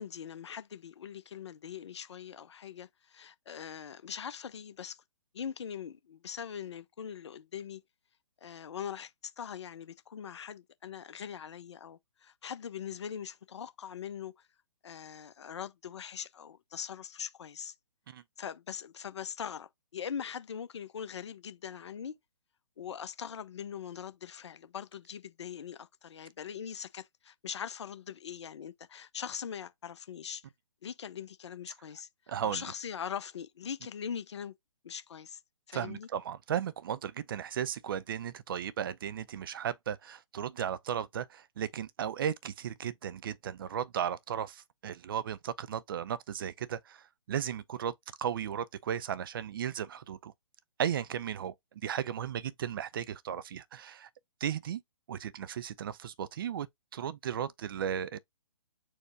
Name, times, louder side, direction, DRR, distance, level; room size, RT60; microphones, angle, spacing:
voice 1, 0.0-5.0 5.3-7.8 8.4-14.5 14.8-17.7 18.4-22.2 22.8-30.5 30.8-32.1 32.4-34.5 34.8-35.4 35.7-36.1, left 8 dB, 55° left, 0.6 m, -41 dB
voice 2, 32.3-32.6 35.7-50.3 50.8-51.5 51.8-54.1 54.4-54.8 55.1-56.7 56.9-58.2, right 9 dB, 45° right, 0.4 m, -35 dB
4.5 x 2.2 x 4.6 m
figure-of-eight pair, 135°, 17 cm